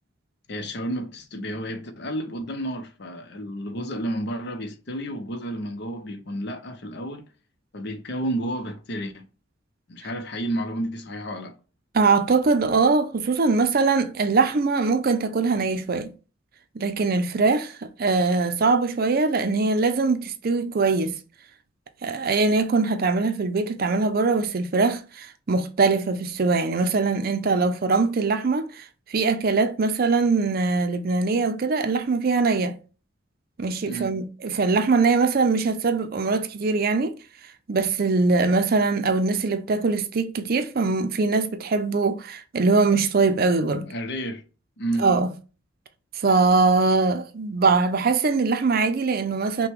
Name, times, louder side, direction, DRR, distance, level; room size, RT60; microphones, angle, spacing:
voice 1, 0.5-7.2 7.7-9.3 9.9-11.5 33.8-34.1 43.7-44.4 44.8-45.0, right 1 dB, 60° left, 0.7 m, -31 dB
voice 2, 11.9-16.1 16.8-21.2 22.0-28.8 29.1-32.8 33.6-37.1 37.7-43.9 45.0-45.3 46.2-49.7, right 4 dB, 50° right, 0.5 m, -22 dB
5.7 x 2.2 x 3.5 m
head